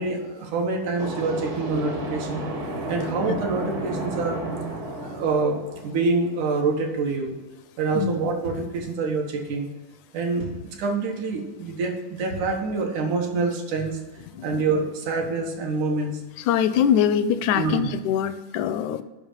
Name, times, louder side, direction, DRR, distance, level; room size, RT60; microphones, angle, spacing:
voice 1, 0.0-2.4 2.9-4.4 5.0-7.4 7.8-9.7 10.1-14.0 14.4-16.2 17.5-17.9, right 4 dB, 75° right, 1 dB, 2.7 m, -26 dB
sound 1, 1.0-6.7, right 1 dB, 50° right, 1.6 m, -32 dB
voice 2, 8.0-8.3 14.3-14.6 16.5-19.0, left 9 dB, 80° left, 13 dB, 1.8 m, -23 dB
sound 2, 8.4-8.9 10.4-10.8 12.3-12.7, equal, 90° right, 4.6 m, -38 dB
7.9 x 5.8 x 7.3 m, 1.2 s
omnidirectional pair, 3.6 m